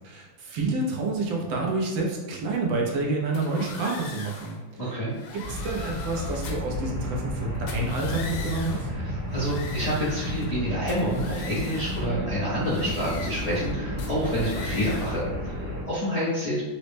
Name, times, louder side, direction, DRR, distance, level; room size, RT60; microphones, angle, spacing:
voice 1, 0.0-4.6 4.8-4.9 5.3-8.9, right 3 dB, 80° right, -1 dB, 1.4 m, -28 dB
sound 1, 3.3-4.6 5.1-6.8 7.6-8.9 9.3-10.6 10.9-12.1 12.6-13.7 14.0-15.2, left 4 dB, 90° left, 1.4 m, -41 dB
sound 2, 5.4-15.8, left 1 dB, 60° right, 1.6 m, -32 dB
voice 2, 8.9-16.6, equal, 50° left, -10 dB, 0.4 m, -28 dB
4.0 x 2.1 x 3.2 m, 1.2 s
omnidirectional pair, 2.1 m